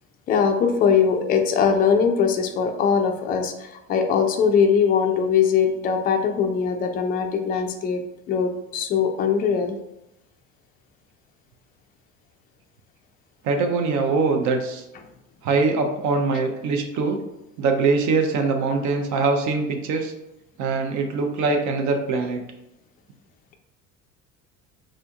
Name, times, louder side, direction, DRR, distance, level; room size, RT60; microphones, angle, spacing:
voice 1, 0.3-8.0 8.3-9.7, left 6 dB, 25° left, 5 dB, 0.3 m, -21 dB
voice 2, 13.4-14.8 15.4-17.2 17.6-20.1 20.6-22.4, right 4 dB, 45° right, 4 dB, 0.6 m, -22 dB
3.7 x 2.5 x 2.3 m, 0.89 s
figure-of-eight pair, 60°, 42 cm